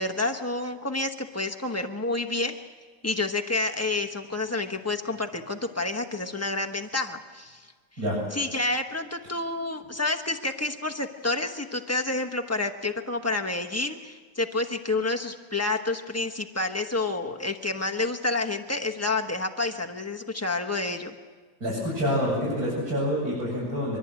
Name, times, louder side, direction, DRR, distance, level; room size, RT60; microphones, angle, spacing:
voice 1, 0.0-2.6 3.0-7.7 8.3-21.1, left 2 dB, 20° left, 3 dB, 0.3 m, -29 dB
voice 2, 21.6-24.0, equal, 40° right, -6 dB, 8.6 m, -27 dB
23.5 x 23.5 x 8.8 m, 1.5 s
omnidirectional pair, 2.3 m